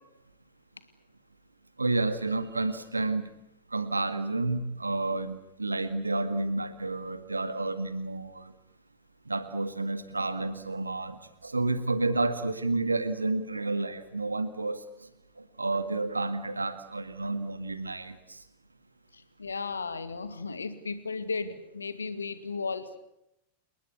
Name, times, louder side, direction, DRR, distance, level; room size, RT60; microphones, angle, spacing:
voice 1, 1.8-3.3 3.7-8.5 9.3-15.1 15.4-18.4, right 2 dB, 80° right, 12 dB, 1.9 m, -30 dB
voice 2, 19.1-23.0, left 4 dB, 75° left, 12 dB, 2.4 m, -35 dB
28.5 x 21.0 x 8.3 m, 0.81 s
figure-of-eight pair, 90°, 0 cm